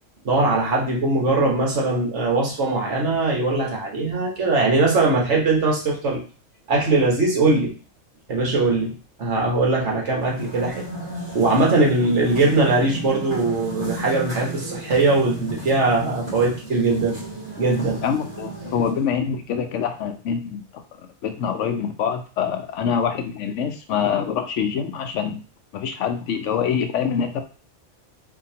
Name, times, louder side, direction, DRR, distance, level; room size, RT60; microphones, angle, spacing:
voice 1, 0.2-6.2 6.7-7.7 8.3-10.8 11.3-17.2 17.6-18.0, right 3 dB, 70° right, -2 dB, 1.5 m, -21 dB
sound 1, 10.2-19.1, right 2 dB, 35° right, 2.1 m, -34 dB
voice 2, 18.0-20.8 21.2-25.4 25.7-27.4, left 7 dB, 80° left, 6 dB, 0.9 m, -25 dB
4.4 x 2.7 x 2.8 m, 0.36 s
omnidirectional pair, 1.3 m